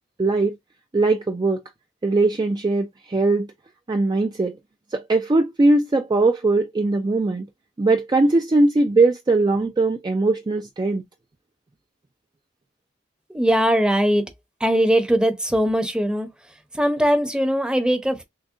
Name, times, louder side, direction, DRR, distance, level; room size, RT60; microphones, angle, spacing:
voice 1, 0.2-0.6 0.9-1.6 2.0-3.5 3.9-4.6 4.9-7.5 7.8-11.0, right 2 dB, 20° right, 0.3 m, -20 dB
voice 2, 13.3-14.3 14.6-16.3 16.7-18.2, equal, 5° right, 0.7 m, -20 dB
6.2 x 2.1 x 2.6 m
head